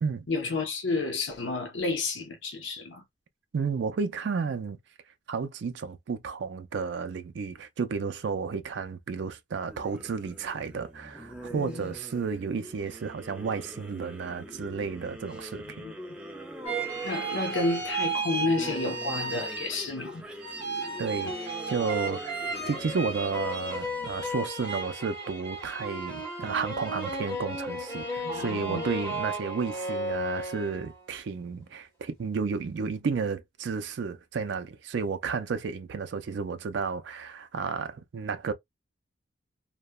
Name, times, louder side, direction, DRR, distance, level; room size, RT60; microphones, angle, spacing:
voice 1, 0.3-3.0 11.5-11.9 15.6-16.2 17.0-20.2 28.2-28.9, left 3 dB, 80° left, 0.8 m, -31 dB
voice 2, 3.5-4.8 5.3-15.9 21.0-22.4 22.7-38.5, right 5 dB, 70° right, 0.4 m, -32 dB
sound 1, 9.7-24.6, right 1 dB, 5° right, 0.4 m, -43 dB
sound 2, 16.7-20.1 20.4-31.0, right 2 dB, 15° left, 1.4 m, -34 dB
2.8 x 2.1 x 2.2 m
head